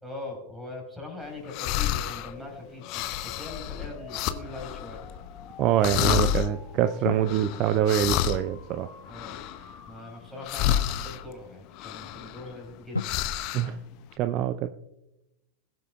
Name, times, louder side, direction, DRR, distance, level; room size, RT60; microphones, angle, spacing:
voice 1, 0.0-5.0 9.1-9.4 9.9-13.2, left 2 dB, 5° right, 1 dB, 4.4 m, -41 dB
sound 1, 1.2-11.1, left 5 dB, 25° left, 3.4 m, -50 dB
sound 2, 1.5-2.3 2.8-5.5 5.8-6.5 7.2-9.9 10.4-11.2 11.8-12.7 13.0-13.8, left 11 dB, 40° left, 0.7 m, -29 dB
voice 2, 5.6-8.9 13.5-13.8 14.2-14.8, right 11 dB, 40° right, 10 dB, 0.5 m, -25 dB
sound 3, 7.0-10.4 11.1-11.2 12.9-13.0, left 2 dB, 85° left, 0.4 m, -39 dB
21.0 x 7.8 x 2.3 m, 0.89 s
figure-of-eight pair, 90°, 0 cm